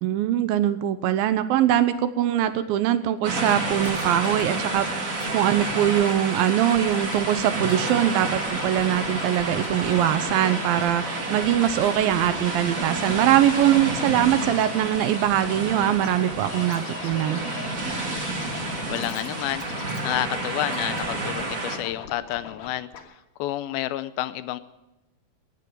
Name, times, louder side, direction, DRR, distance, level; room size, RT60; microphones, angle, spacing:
voice 1, 0.0-17.4, right 11 dB, 80° right, 12 dB, 2.4 m, -22 dB
sound 1, 3.2-21.8, right 2 dB, 35° right, 1.4 m, -30 dB
Scratching (performance technique), 3.6-5.3 5.6-6.2 6.6-7.4 7.7-22.7 22.9-23.0, left 6 dB, 65° left, 2.9 m, -40 dB
voice 2, 18.9-19.6 20.0-23.1 23.4-24.6, left 14 dB, 80° left, 13 dB, 2.4 m, -29 dB
18.0 x 6.8 x 9.3 m, 0.98 s
omnidirectional pair, 4.3 m